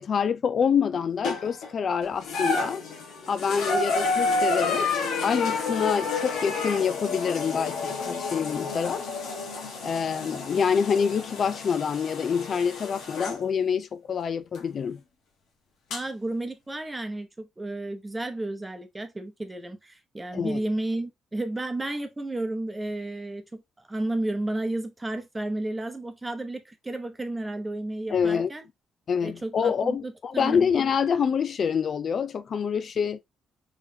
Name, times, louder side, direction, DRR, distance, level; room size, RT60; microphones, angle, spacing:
voice 1, 0.0-2.8 3.3-4.9 5.2-9.0 9.8-15.0 20.3-20.6 28.1-28.5 29.1-33.2, left 6 dB, 50° left, 0.3 m, -26 dB
sound 1, 1.2-1.7 2.2-13.4 14.5-14.6 15.9-16.0, left 3 dB, 80° left, 1.2 m, -30 dB
voice 2, 15.9-28.6 29.2-30.6, right 2 dB, 15° right, 0.8 m, -32 dB
3.7 x 3.1 x 2.7 m
cardioid pair, 90°, 0 cm